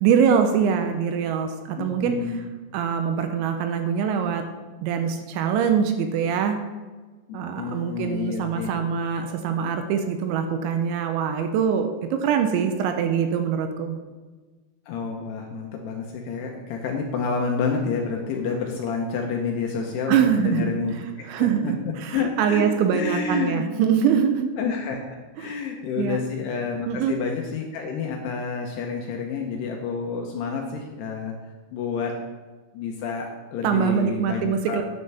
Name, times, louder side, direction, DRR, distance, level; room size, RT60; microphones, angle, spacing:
voice 1, 0.0-2.2 2.7-4.5 4.8-6.6 7.3-14.0 20.1-20.7 21.3-24.5 25.4-25.5 26.0-26.2 26.9-27.2 33.6-34.8, right 7 dB, 80° right, 6 dB, 2.9 m, -23 dB
voice 2, 1.8-2.5 7.3-8.7 14.9-21.5 22.1-22.6 22.9-23.8 24.6-31.3 31.7-32.1 32.7-34.8, left 5 dB, 75° left, 1 dB, 2.6 m, -29 dB
11.5 x 9.7 x 3.4 m, 1.3 s
omnidirectional pair, 5.6 m